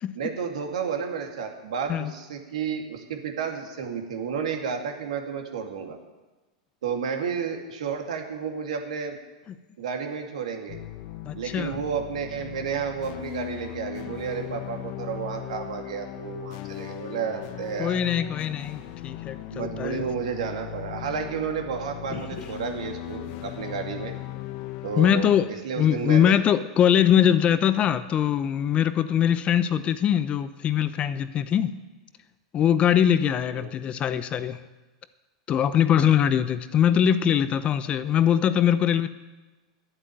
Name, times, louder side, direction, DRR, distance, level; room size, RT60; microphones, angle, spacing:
voice 1, 0.1-6.0 6.8-9.2 9.8-10.8 11.3-18.0 19.5-24.1 24.8-26.4 33.5-33.7 35.9-36.3, right 6 dB, 75° right, 4 dB, 2.4 m, -31 dB
sound 1, 10.7-25.5, left 14 dB, 50° left, 1.3 m, -38 dB
voice 2, 11.2-11.8 17.8-20.0 22.1-22.5 25.0-25.5 25.8-31.7 32.5-34.6 35.5-39.1, left 9 dB, 30° left, 14 dB, 0.7 m, -22 dB
11.0 x 8.5 x 9.2 m, 1.2 s
hypercardioid pair, 105°, 4 cm